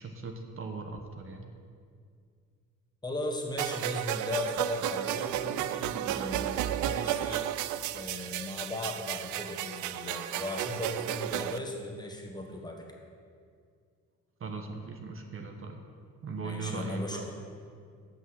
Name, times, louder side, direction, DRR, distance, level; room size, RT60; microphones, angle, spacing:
voice 1, 0.0-1.5 14.4-15.9 16.2-17.3, right 3 dB, 45° right, 4 dB, 1.0 m, -39 dB
voice 2, 3.0-7.5 7.9-12.9 16.4-17.3, left 2 dB, 15° left, 0 dB, 1.4 m, -37 dB
sound 1, 3.6-11.6, right 12 dB, 75° right, 0.4 m, -33 dB
8.1 x 6.0 x 7.7 m, 2.2 s
cardioid pair, 90°, 30 cm